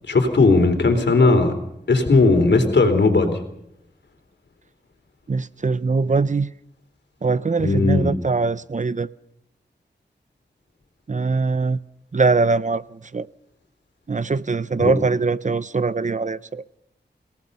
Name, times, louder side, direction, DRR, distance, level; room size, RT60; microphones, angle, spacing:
voice 1, 0.1-1.5 1.9-3.4 7.6-8.2 14.8-15.0, left 3 dB, 80° left, 3.7 m, -17 dB
voice 2, 5.3-6.5 7.2-9.1 11.1-11.8 12.1-12.8 13.1-13.3 14.1-16.6, right 4 dB, 45° right, 0.7 m, -22 dB
29.5 x 18.0 x 5.5 m
wide cardioid pair, 80°, 18 cm